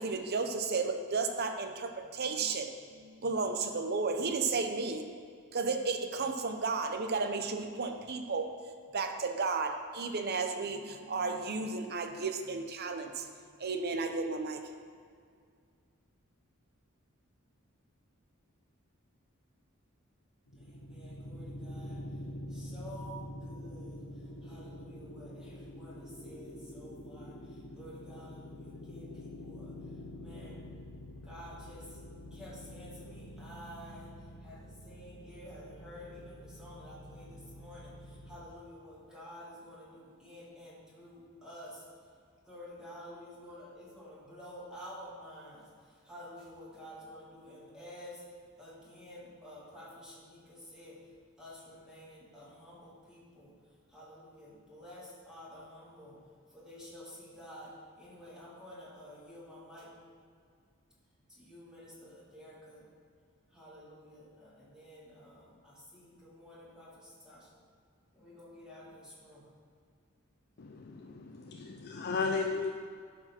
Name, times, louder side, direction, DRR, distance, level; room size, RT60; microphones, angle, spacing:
voice 1, 0.0-5.1 5.5-8.5 8.9-13.3 13.6-14.8, right 4 dB, 50° right, 6 dB, 0.8 m, -33 dB
sound 1, 20.5-38.4, left 1 dB, 85° left, 1.2 m, -46 dB
voice 2, 20.6-22.0 22.5-24.1 24.4-29.8 30.2-30.7 31.2-32.0 32.3-41.8 42.4-48.2 48.6-51.1 51.4-53.6 53.9-56.2 56.5-60.0 61.3-62.9 63.5-67.5 68.1-69.5, equal, 5° right, -7 dB, 2.0 m, -51 dB
voice 3, 70.6-72.7, left 4 dB, 50° left, 2 dB, 0.5 m, -35 dB
12.0 x 5.0 x 5.7 m, 2.1 s
head